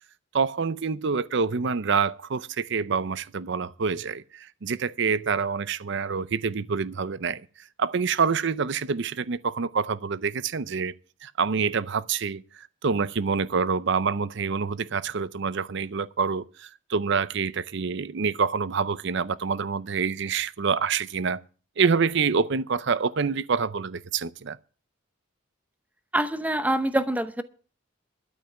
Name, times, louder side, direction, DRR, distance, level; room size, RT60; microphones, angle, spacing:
voice 1, 0.3-7.4 7.8-10.9 11.2-21.4 21.8-24.6, right 5 dB, 60° right, 0.6 m, -26 dB
voice 2, 26.1-27.4, right 1 dB, 10° right, 0.8 m, -25 dB
12.5 x 5.5 x 9.2 m
head